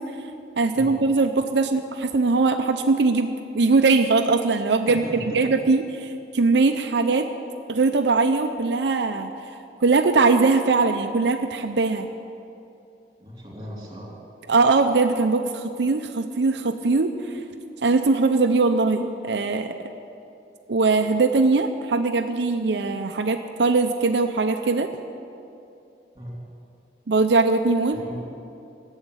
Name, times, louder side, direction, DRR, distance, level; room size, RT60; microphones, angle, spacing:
voice 1, 0.6-5.9 6.3-7.3 7.7-9.3 9.8-12.1 14.5-17.4 17.8-19.8 20.7-24.9 27.1-28.0, right 3 dB, 80° right, 6 dB, 0.6 m, -21 dB
voice 2, 4.9-5.7 13.2-14.1 26.1-26.4 27.9-28.2, equal, 25° right, -3 dB, 3.3 m, -37 dB
15.0 x 7.3 x 9.8 m, 2.7 s
head